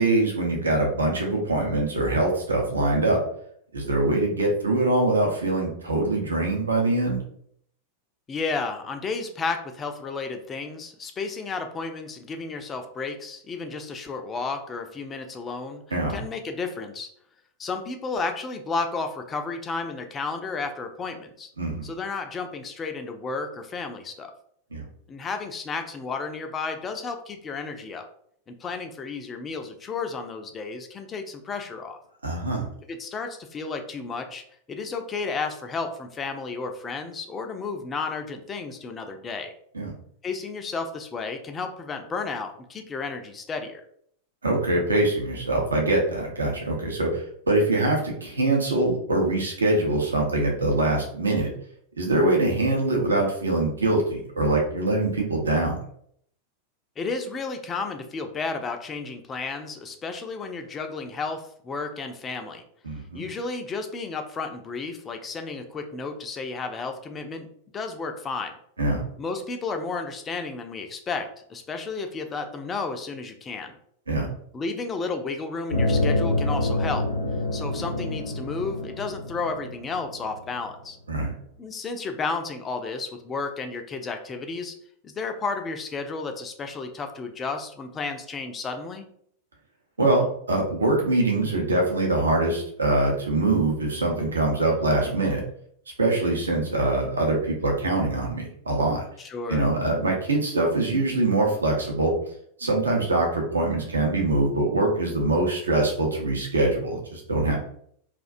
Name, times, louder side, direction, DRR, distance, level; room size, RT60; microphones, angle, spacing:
voice 1, 0.0-3.2 3.7-7.2 15.9-16.2 21.6-21.9 24.7-24.8 32.2-32.7 39.7-39.9 44.4-51.5 52.0-55.8 62.8-63.2 68.8-69.0 74.1-74.3 81.1-81.3 90.0-95.4 96.0-99.0 99.5-102.1 102.6-107.6, right 2 dB, 75° right, 0 dB, 0.5 m, -23 dB
voice 2, 8.3-15.8 16.1-17.1 17.6-21.5 21.8-24.3 25.1-28.1 28.5-32.0 32.9-39.5 40.2-43.8 57.0-62.6 63.1-67.5 67.7-68.6 69.2-73.8 74.5-77.1 77.5-81.0 81.6-84.7 85.0-89.1 99.2-99.7, left 4 dB, 20° left, 6 dB, 0.3 m, -32 dB
sound 1, 75.7-80.6, left 2 dB, 80° left, 0.5 m, -27 dB
2.3 x 2.1 x 2.5 m, 0.66 s
figure-of-eight pair, 90°, 0 cm